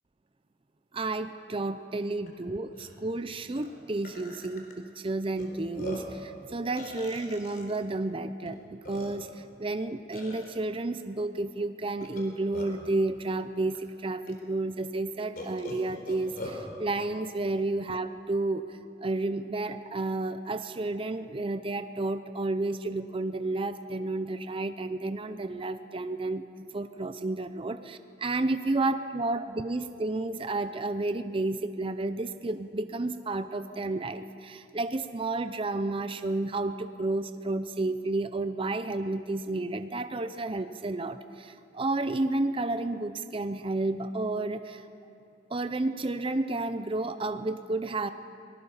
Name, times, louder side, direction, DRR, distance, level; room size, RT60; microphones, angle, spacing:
voice 1, 0.9-44.9 45.5-48.1, right 2 dB, 30° right, 10 dB, 0.6 m, -31 dB
Burping eructation, 2.3-2.4 2.7-2.9 3.6-3.7 4.0-4.7 5.4-5.5 5.7-6.2 6.8-7.8 8.5-8.6 8.8-9.4 10.1-10.5 12.0-12.9 13.7-13.8 14.3-14.4 15.4-16.6, left 1 dB, 55° left, 3.7 m, -42 dB
24.5 x 19.0 x 5.6 m, 2.5 s
head